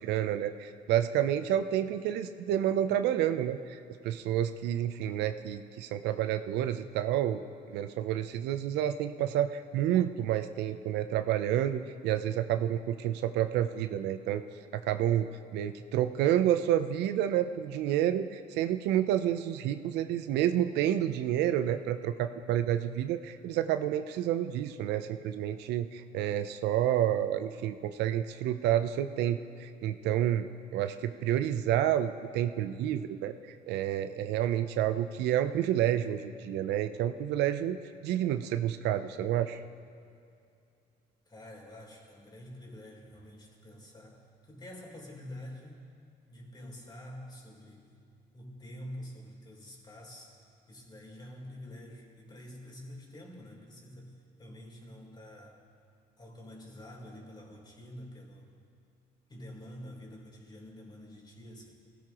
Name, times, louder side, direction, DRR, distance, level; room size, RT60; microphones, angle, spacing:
voice 1, 0.0-14.4 14.7-15.3 15.5-30.5 30.7-33.4 33.7-39.6, right 11 dB, 85° right, 10 dB, 0.6 m, -29 dB
voice 2, 41.3-45.8 46.3-47.9 48.3-50.3 50.7-54.1 54.4-55.6 56.2-58.5 59.3-61.7, left 1 dB, 25° left, -2 dB, 3.7 m, -47 dB
21.0 x 16.5 x 3.0 m, 2.4 s
cardioid pair, 110°, 17 cm